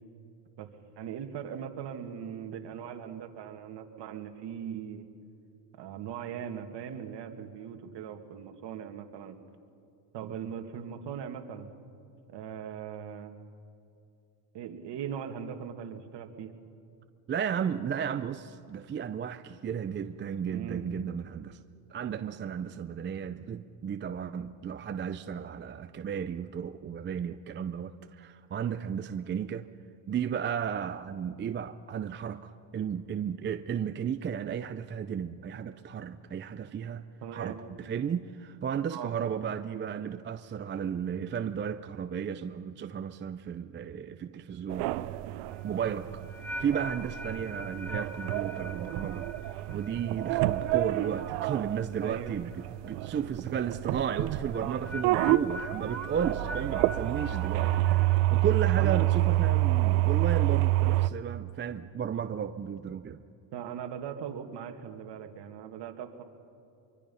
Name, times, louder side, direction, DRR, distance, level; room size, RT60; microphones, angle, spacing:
voice 1, 1.0-5.1 5.8-9.4 10.1-11.7 12.3-13.4 14.5-16.5 20.5-20.9 22.4-22.5 37.2-37.6 38.9-39.1 52.0-52.3 54.6-55.2 56.7-56.9 58.7-59.1 63.5-66.2, right 8 dB, 55° right, 5 dB, 2.2 m, -40 dB
voice 2, 17.3-21.6 21.9-29.7 30.1-37.0 37.3-45.2 45.6-46.3 46.6-49.3 49.7-63.2, right 8 dB, 25° right, 9 dB, 0.5 m, -34 dB
sound 1, 44.7-61.1, right 16 dB, 80° right, 0.8 m, -28 dB
sound 2, 45.5-52.6 52.9-53.3 54.5-59.1, left 1 dB, 5° left, 0.9 m, -44 dB
24.0 x 24.0 x 5.7 m, 2.6 s
cardioid pair, 115°, 50 cm